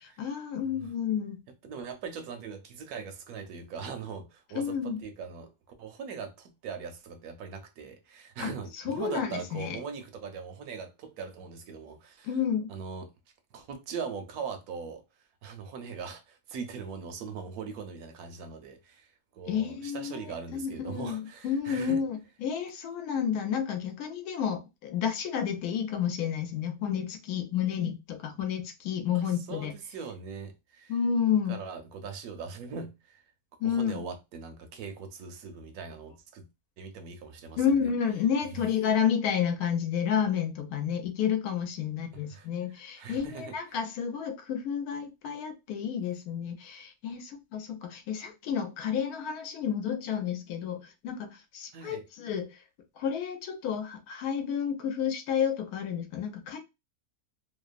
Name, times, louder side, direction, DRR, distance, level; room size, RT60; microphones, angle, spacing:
voice 1, 0.0-1.4 4.5-5.0 8.4-8.5 8.8-9.8 12.2-12.7 19.5-29.7 30.9-31.6 33.6-34.0 37.6-52.6 53.0-56.6, left 8 dB, 80° left, 1.1 m, -30 dB
voice 2, 1.6-5.5 5.8-12.3 12.7-13.1 13.5-15.0 15.4-22.0 29.1-30.9 31.5-33.2 33.6-36.5 36.8-37.9 42.3-42.5 43.0-43.5 51.7-52.0, right 6 dB, 75° right, 1.0 m, -40 dB
2.9 x 2.0 x 2.4 m
omnidirectional pair, 1.6 m